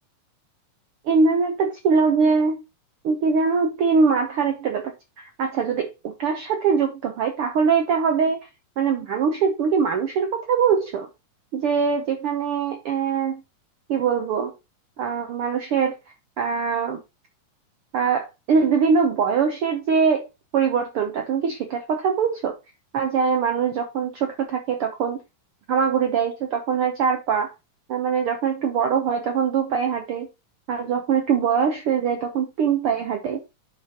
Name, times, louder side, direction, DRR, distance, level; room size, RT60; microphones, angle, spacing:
voice 1, 1.1-2.6 3.0-4.9 5.2-8.4 8.8-11.1 11.5-13.4 13.9-14.5 15.0-15.9 16.4-17.0 17.9-20.3 20.5-22.5 22.9-25.2 25.7-27.5 27.9-30.3 30.7-33.4, right 6 dB, 75° right, 1.3 m, -22 dB
10.5 x 5.1 x 2.9 m
omnidirectional pair, 3.6 m